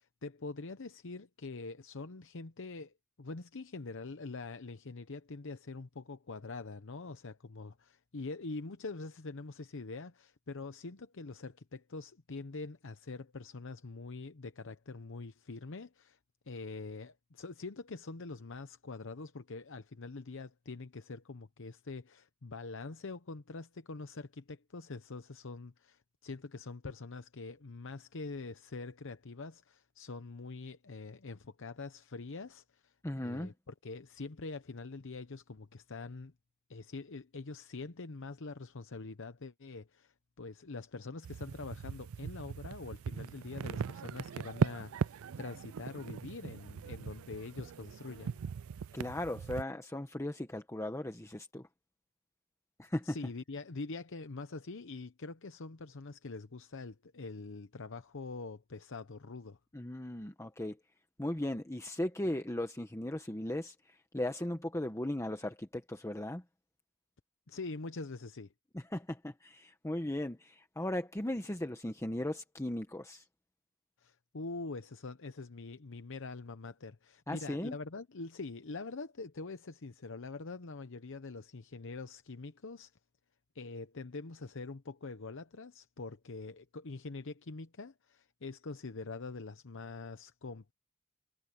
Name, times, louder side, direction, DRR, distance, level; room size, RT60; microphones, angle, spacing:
voice 1, 0.0-16.2 16.5-36.3 36.7-48.4 53.0-59.6 67.5-68.5 74.0-82.9 83.5-90.7, left 3 dB, 65° left, 0.9 m, -44 dB
voice 2, 33.0-33.5 48.9-51.7 52.8-53.2 59.7-60.8 61.2-66.4 68.7-73.3 77.3-77.8, left 1 dB, 15° left, 1.1 m, -37 dB
sound 1, 41.2-49.6, right 6 dB, 75° right, 0.4 m, -39 dB
head